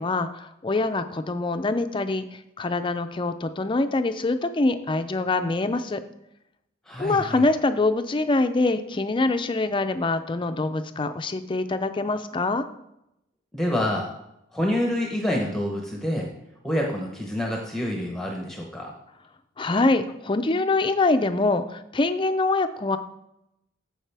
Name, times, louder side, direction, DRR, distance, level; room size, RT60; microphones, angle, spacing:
voice 1, 0.0-6.0 7.0-12.7 19.6-23.0, left 2 dB, 25° left, 10 dB, 0.5 m, -24 dB
voice 2, 6.9-7.5 13.5-14.1 14.5-16.3 16.6-18.9, left 1 dB, ahead, 0 dB, 0.9 m, -27 dB
14.0 x 4.9 x 3.4 m, 0.83 s
head